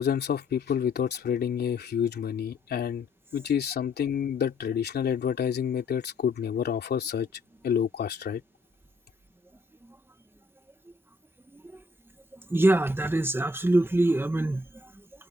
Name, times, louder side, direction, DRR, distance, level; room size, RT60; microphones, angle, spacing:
voice 1, 0.0-3.1 3.3-7.3 7.6-8.4, left 8 dB, 55° left, 3.1 m, -28 dB
voice 2, 12.5-14.9, right 2 dB, 10° right, 2.0 m, -24 dB
cardioid pair, 90°, 20 cm